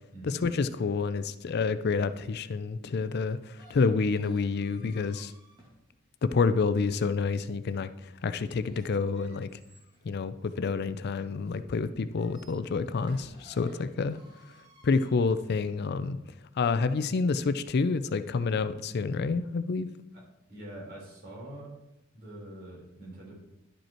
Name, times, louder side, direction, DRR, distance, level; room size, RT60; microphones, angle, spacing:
voice 1, 0.2-5.3 6.2-9.6 10.0-14.2 14.8-16.2 16.6-19.9, left 4 dB, 55° left, 12 dB, 0.4 m, -28 dB
sound 1, 3.2-6.6 8.4-11.4 12.0-16.1, equal, 25° right, 2.1 m, -57 dB
voice 2, 20.5-21.7 22.1-23.3, right 1 dB, 55° right, -3 dB, 3.8 m, -44 dB
11.0 x 5.2 x 4.4 m, 0.89 s
head